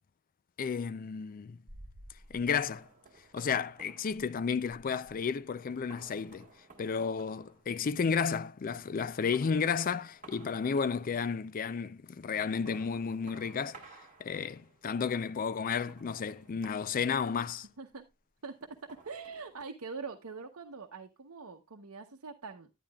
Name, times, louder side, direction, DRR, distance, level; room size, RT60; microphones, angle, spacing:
voice 1, 0.6-1.6 2.3-2.9 3.3-6.5 6.8-13.8 14.2-17.7, left 6 dB, 40° left, 0.4 m, -32 dB
sound 1, 1.7-8.4 8.7-11.4 12.3-14.9 15.7-17.9 18.6-19.7, right 3 dB, 35° right, 1.7 m, -56 dB
voice 2, 19.0-22.7, right 4 dB, 80° right, 0.9 m, -43 dB
10.5 x 10.0 x 2.3 m
head